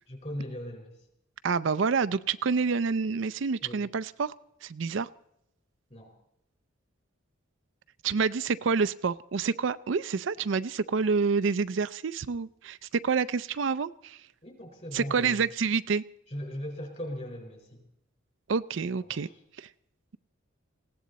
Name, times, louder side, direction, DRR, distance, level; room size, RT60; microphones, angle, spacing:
voice 1, 0.1-1.0 3.6-3.8 5.9-6.1 14.4-15.4 16.3-17.8 19.0-19.4, equal, 35° left, 3 dB, 4.5 m, -39 dB
voice 2, 1.4-4.3 4.6-5.1 8.0-14.2 14.9-16.0 18.5-19.3 19.6-19.7, right 5 dB, 65° right, 15 dB, 0.5 m, -28 dB
20.0 x 16.5 x 4.1 m, 0.79 s
head